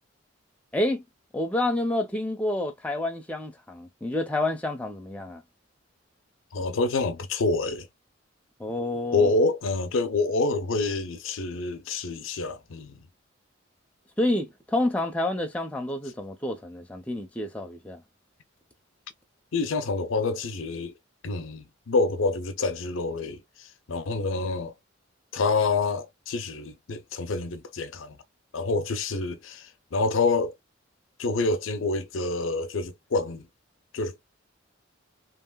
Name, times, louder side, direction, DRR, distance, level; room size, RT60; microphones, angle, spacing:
voice 1, 0.7-1.0 1.3-5.4 8.6-9.3 14.2-18.0, left 1 dB, 5° left, 0.5 m, -28 dB
voice 2, 6.5-7.9 9.1-13.0 19.5-20.9 21.2-24.7 25.3-28.2 28.5-30.5 31.2-33.5 33.9-34.2, left 3 dB, 80° left, 0.6 m, -27 dB
2.9 x 2.8 x 2.2 m
head